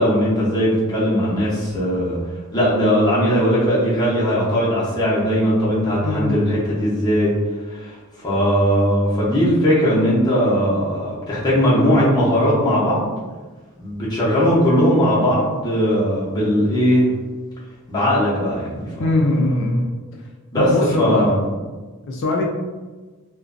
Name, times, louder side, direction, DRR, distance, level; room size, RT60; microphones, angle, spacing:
voice 1, 0.0-2.2 2.5-7.3 7.7-13.1 13.8-17.1 17.9-18.9 20.5-20.7 21.0-21.5, equal, 20° left, -8 dB, 0.7 m, -19 dB
voice 2, 6.0-6.4 19.0-20.0 20.6-21.4 22.0-22.5, left 2 dB, 60° left, 0 dB, 0.3 m, -21 dB
2.5 x 2.2 x 2.4 m, 1.3 s
head